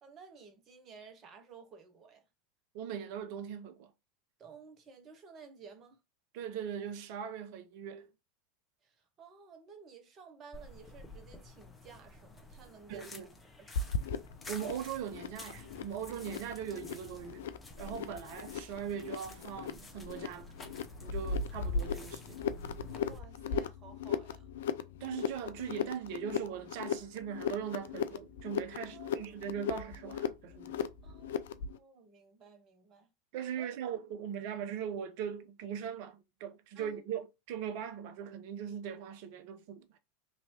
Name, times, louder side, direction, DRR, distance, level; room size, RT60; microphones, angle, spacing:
voice 1, 0.0-2.3 4.4-6.0 8.8-13.1 13.6-14.0 17.2-17.3 23.0-24.5 28.8-29.4 31.0-31.5 31.7-33.1 33.6-33.7 36.7-37.0, right 5 dB, 35° right, 0.9 m, -54 dB
voice 2, 2.7-3.9 6.3-8.1 12.9-13.3 14.5-17.5 17.8-20.5 21.0-22.4 25.0-30.9 33.3-40.0, right 8 dB, 55° right, 0.5 m, -40 dB
sound 1, 10.5-23.2, left 2 dB, 15° left, 0.7 m, -52 dB
sound 2, 13.7-31.8, left 6 dB, 70° left, 0.3 m, -37 dB
3.0 x 2.7 x 2.8 m
figure-of-eight pair, 85°, 0 cm